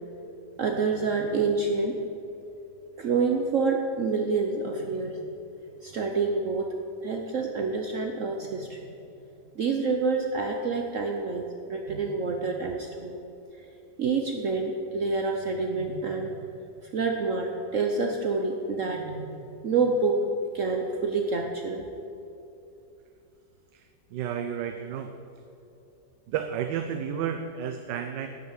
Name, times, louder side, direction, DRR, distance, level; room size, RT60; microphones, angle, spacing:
voice 1, 0.6-1.9 3.0-5.2 5.8-6.7 7.0-8.8 9.5-13.2 14.0-16.3 16.9-19.4 19.6-20.2 20.5-21.8, right 4 dB, 55° right, 2 dB, 1.0 m, -27 dB
voice 2, 23.7-25.2 26.3-28.3, right 8 dB, 85° right, 7 dB, 1.3 m, -32 dB
12.0 x 6.7 x 8.7 m, 2.8 s
omnidirectional pair, 1.9 m